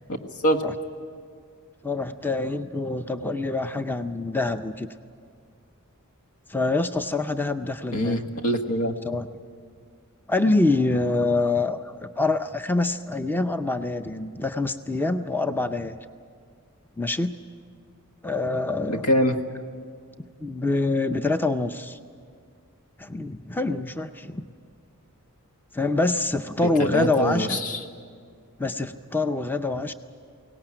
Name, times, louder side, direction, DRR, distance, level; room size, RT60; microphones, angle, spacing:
voice 1, 1.8-4.9 6.5-8.2 9.1-9.3 10.3-16.0 17.0-17.4 18.2-19.0 20.4-22.0 23.0-24.5 25.7-27.6 28.6-29.9, left 2 dB, 10° left, 9 dB, 0.5 m, -25 dB
voice 2, 7.9-9.0 18.9-19.4 26.6-27.8, equal, 85° left, 5 dB, 1.6 m, -24 dB
22.5 x 18.0 x 8.8 m, 2.1 s
head